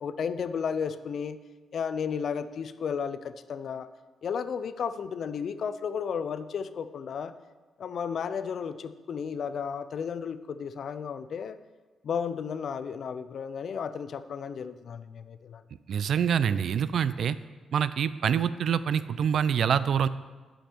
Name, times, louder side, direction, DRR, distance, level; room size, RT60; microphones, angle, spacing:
voice 1, 0.0-1.4 1.7-3.9 4.2-7.3 7.8-11.6 12.0-15.6, left 6 dB, 55° left, 13 dB, 0.4 m, -33 dB
voice 2, 15.9-17.4 17.7-20.1, right 8 dB, 65° right, 15 dB, 0.3 m, -25 dB
11.0 x 5.1 x 4.4 m, 1.3 s
cardioid pair, 125°, 0 cm